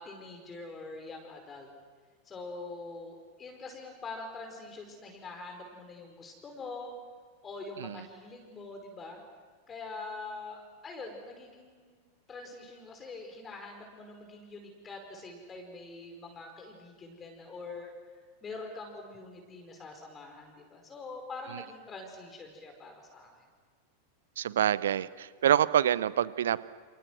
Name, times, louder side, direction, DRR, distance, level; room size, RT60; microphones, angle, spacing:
voice 1, 0.0-1.7 2.2-6.9 7.4-9.2 9.7-12.0 12.3-17.9 18.4-23.4, left 3 dB, 20° left, 3 dB, 5.0 m, -44 dB
voice 2, 24.4-26.6, right 10 dB, 60° right, 18 dB, 0.9 m, -26 dB
29.5 x 29.0 x 6.2 m, 1.5 s
figure-of-eight pair, 90°, 0 cm